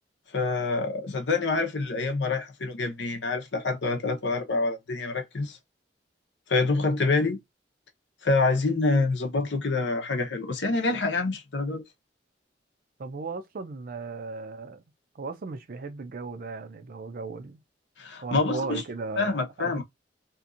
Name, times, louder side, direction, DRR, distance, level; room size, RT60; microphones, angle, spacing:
voice 1, 0.3-5.6 6.5-7.4 8.2-11.8 18.0-18.8 19.2-19.8, left 3 dB, 75° left, 0.8 m, -26 dB
voice 2, 13.0-14.8 15.1-17.6 18.2-19.8, right 4 dB, 55° right, 0.5 m, -36 dB
2.9 x 2.5 x 2.4 m
head